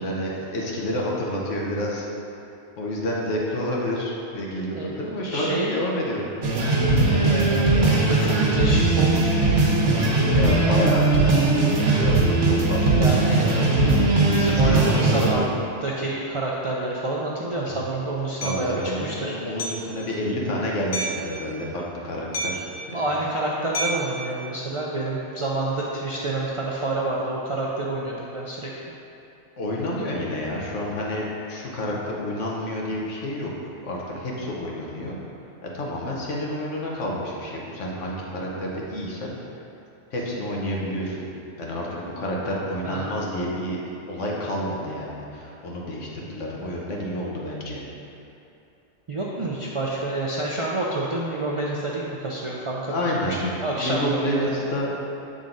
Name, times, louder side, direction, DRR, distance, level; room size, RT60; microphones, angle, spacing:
voice 1, 0.0-2.0 2.8-6.3 10.3-13.8 14.3-15.3 18.4-23.0 29.6-33.5 33.8-35.2 35.7-39.3 40.1-41.3 41.6-43.8 44.1-47.8 52.9-54.9, left 1 dB, 85° left, -3 dB, 1.3 m, -29 dB
voice 2, 5.2-5.8 7.2-9.5 13.0-13.7 14.3-15.5 15.8-19.3 22.9-28.7 42.8-43.2 49.1-54.7, right 2 dB, 55° right, -5 dB, 0.3 m, -28 dB
sound 1, 6.4-15.3, right 2 dB, 75° right, 1.3 m, -19 dB
Hammer, 18.4-18.6 19.6-19.9 20.9-21.3 22.3-22.8 23.7-24.1, right 1 dB, 50° left, 0.9 m, -29 dB
7.3 x 3.9 x 3.9 m, 2.8 s
omnidirectional pair, 1.2 m